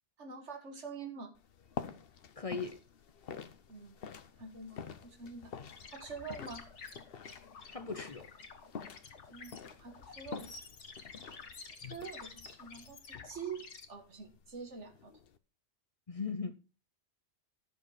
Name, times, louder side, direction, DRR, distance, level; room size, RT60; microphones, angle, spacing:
voice 1, 0.2-1.3 3.7-4.0 4.4-5.5 5.9-6.7 9.3-10.5 11.8-15.1, right 5 dB, 80° right, 2.0 m, -46 dB
sound 1, 1.4-15.4, left 7 dB, 60° left, 1.0 m, -48 dB
voice 2, 2.4-2.8 7.7-8.3 16.1-16.5, left 4 dB, 35° left, 0.7 m, -38 dB
sound 2, 5.7-13.9, left 4 dB, 80° left, 1.7 m, -51 dB
12.5 x 6.8 x 4.9 m
omnidirectional pair, 1.2 m